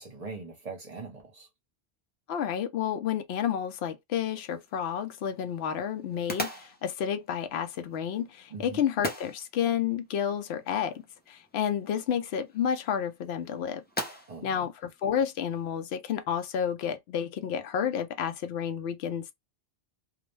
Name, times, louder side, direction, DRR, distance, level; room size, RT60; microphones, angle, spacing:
voice 1, 0.0-1.5 8.5-8.8 14.3-14.7, right 4 dB, 40° right, 0.8 m, -41 dB
voice 2, 2.3-13.8 14.4-19.3, left 8 dB, 75° left, 0.8 m, -30 dB
sound 1, 4.1-15.8, equal, 15° left, 0.4 m, -43 dB
2.4 x 2.1 x 3.1 m
omnidirectional pair, 1.1 m